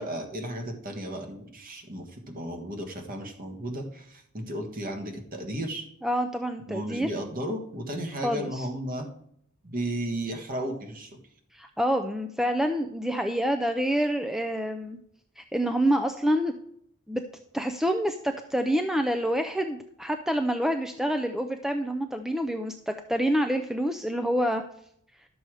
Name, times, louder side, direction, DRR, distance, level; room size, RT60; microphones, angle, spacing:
voice 1, 0.0-5.9 6.7-9.1 9.6-11.2, right 1 dB, 40° right, 4 dB, 1.5 m, -34 dB
voice 2, 6.0-7.1 8.2-8.7 11.5-15.0 15.4-16.5 17.1-17.2 17.5-24.6, equal, ahead, 7 dB, 0.4 m, -27 dB
11.5 x 6.9 x 4.8 m, 0.70 s
head